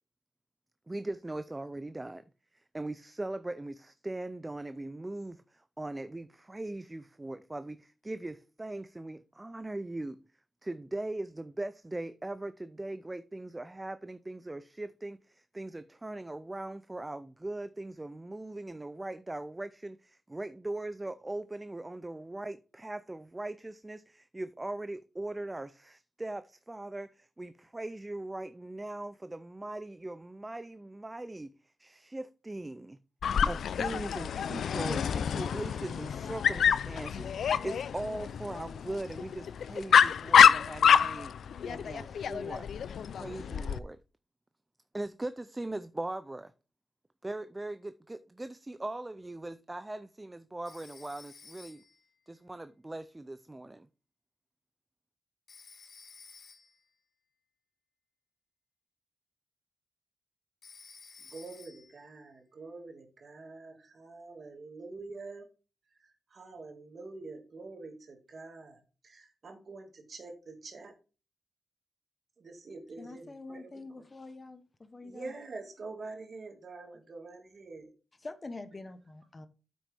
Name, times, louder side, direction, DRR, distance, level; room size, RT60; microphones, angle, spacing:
voice 1, 0.9-2.2 2.5-10.2 10.6-31.5 31.8-33.0 33.5-41.3 41.7-42.7 43.1-44.0 44.9-46.5 47.2-51.8 52.3-53.9, right 2 dB, 20° right, 0.4 m, -40 dB
Dog, 33.2-43.8, left 8 dB, 85° left, 0.4 m, -26 dB
Telephone, 50.6-52.1 55.5-56.9 60.6-62.0, left 5 dB, 65° left, 1.4 m, -53 dB
voice 2, 61.3-65.5 66.0-70.9 72.4-74.0 75.0-77.9, right 3 dB, 55° right, 2.0 m, -46 dB
voice 3, 73.0-75.3 78.2-79.5, left 2 dB, 30° left, 0.9 m, -45 dB
8.5 x 6.1 x 3.4 m
cardioid pair, 80°, 0 cm